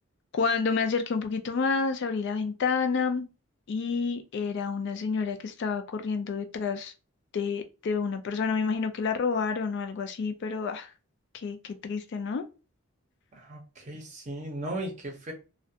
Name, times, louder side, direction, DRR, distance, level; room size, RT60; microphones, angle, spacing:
voice 1, 0.3-3.3 3.7-6.9 7.3-10.9 11.3-12.4, left 5 dB, 50° left, 0.3 m, -29 dB
voice 2, 13.3-15.3, right 1 dB, 30° right, 0.6 m, -37 dB
2.3 x 2.1 x 2.7 m
head